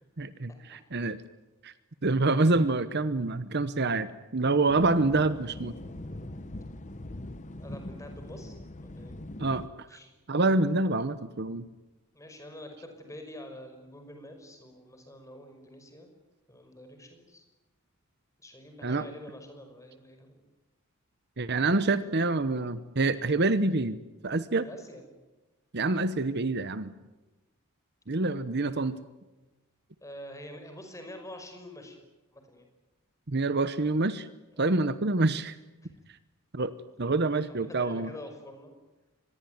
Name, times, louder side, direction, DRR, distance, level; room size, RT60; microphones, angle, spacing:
voice 1, 0.2-1.2 1.6-1.7 2.0-5.7 9.4-9.6 10.3-11.7 18.8-19.1 21.4-24.0 24.2-24.7 25.7-26.9 28.1-29.0 33.3-34.3 34.6-35.5 36.5-36.7 37.0-38.1, right 2 dB, 50° right, 14 dB, 1.0 m, -26 dB
sound 1, 4.7-9.7, left 1 dB, 35° left, 1.1 m, -41 dB
voice 2, 7.6-9.2 9.9-10.1 12.1-16.1 16.5-17.4 18.4-20.5 24.7-25.0 30.0-32.0 32.3-32.7 34.5-34.8 35.8-35.9 37.3-38.7, left 1 dB, 15° left, 5 dB, 5.6 m, -46 dB
25.5 x 21.0 x 9.5 m, 1.1 s
head